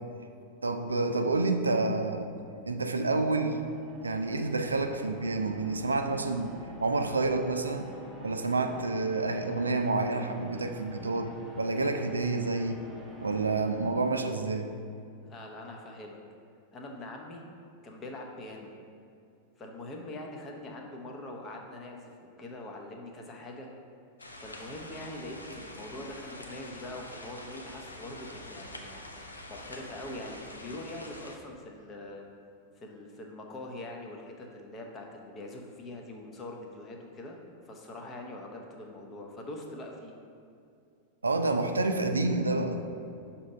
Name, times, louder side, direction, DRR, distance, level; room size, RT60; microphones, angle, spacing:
voice 1, 0.6-2.3 2.7-3.6 4.0-6.5 6.8-7.9 8.2-12.8 13.2-14.7 41.2-42.8, right 3 dB, 75° right, 6 dB, 0.4 m, -29 dB
sound 1, 1.7-14.8, right 1 dB, 10° right, 0.9 m, -50 dB
voice 2, 15.2-16.2 16.7-17.4 17.8-18.7 19.6-23.7 24.4-29.0 29.5-32.2 32.8-37.4 37.7-40.1, left 1 dB, 25° left, 1 dB, 0.8 m, -43 dB
sound 2, 24.2-31.4, left 1 dB, 80° left, 0.5 m, -46 dB
6.2 x 2.9 x 5.2 m, 2.4 s
figure-of-eight pair, 90°, 0 cm